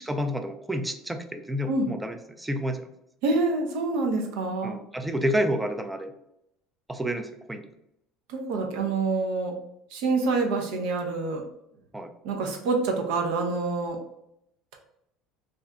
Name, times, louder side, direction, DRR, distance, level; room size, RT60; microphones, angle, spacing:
voice 1, 0.1-2.9 4.6-6.1 6.9-7.7 11.9-12.1, equal, 10° right, 7 dB, 0.4 m, -29 dB
voice 2, 3.2-4.8 8.3-9.5 9.9-11.4 12.2-14.0, right 3 dB, 75° right, 2 dB, 0.6 m, -26 dB
2.5 x 2.2 x 3.6 m, 0.78 s
supercardioid pair, 95°, 0 cm